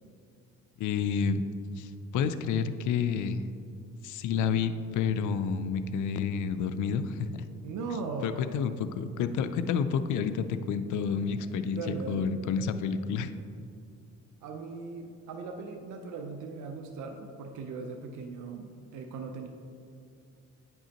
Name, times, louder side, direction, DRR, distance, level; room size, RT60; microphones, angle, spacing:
voice 1, 0.8-1.5 1.8-3.4 4.0-7.3 8.2-11.8 12.1-13.3, left 6 dB, 80° left, 10 dB, 0.5 m, -29 dB
voice 2, 7.6-8.4 11.1-12.3 14.4-19.5, right 4 dB, 80° right, 4 dB, 0.7 m, -39 dB
9.1 x 5.4 x 2.9 m, 2.4 s
cardioid pair, 90°, 30 cm